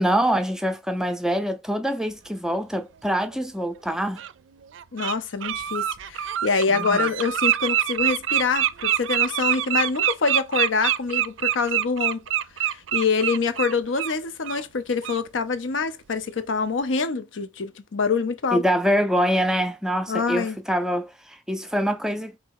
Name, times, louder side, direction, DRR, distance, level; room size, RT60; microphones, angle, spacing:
voice 1, 0.0-4.2 6.7-7.1 18.5-22.4, equal, 5° right, 0.4 m, -25 dB
Bird, 3.3-3.4 4.2-4.3 4.7-5.1 5.4-14.1 14.4-14.6 15.0-15.2, right 11 dB, 80° right, 0.4 m, -25 dB
voice 2, 4.9-12.2 12.6-18.6 20.1-20.6, left 4 dB, 85° left, 0.6 m, -25 dB
4.0 x 2.7 x 4.7 m
head